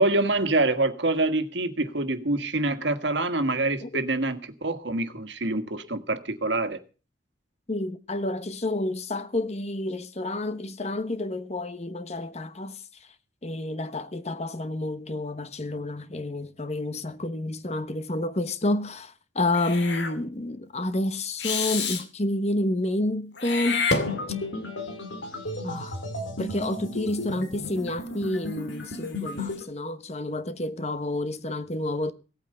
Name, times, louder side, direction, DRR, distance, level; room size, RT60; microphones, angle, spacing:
voice 1, 0.0-6.8, right 2 dB, 70° right, 1.7 m, -26 dB
voice 2, 7.7-13.1 13.4-23.9 25.6-26.0 26.4-32.1, left 1 dB, 35° left, 1.1 m, -29 dB
Meow / Hiss, 19.5-20.1 21.4-22.0 23.4-24.6, left 4 dB, 65° left, 2.5 m, -28 dB
sound 1, 24.1-29.6, left 2 dB, 85° left, 4.1 m, -34 dB
17.5 x 8.9 x 6.6 m
head